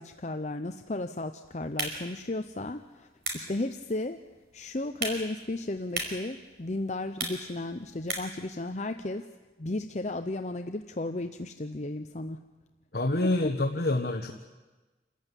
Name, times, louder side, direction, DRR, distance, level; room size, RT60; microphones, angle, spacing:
voice 1, 0.0-3.1 3.3-4.2 4.5-9.2 9.6-12.4 13.4-13.5, left 2 dB, 40° left, 7 dB, 0.8 m, -34 dB
sound 1, 1.6-8.5, right 3 dB, 65° right, 5.2 m, -39 dB
voice 2, 12.9-14.3, left 2 dB, 60° left, 4 dB, 1.3 m, -27 dB
28.0 x 15.0 x 9.9 m, 1.2 s
head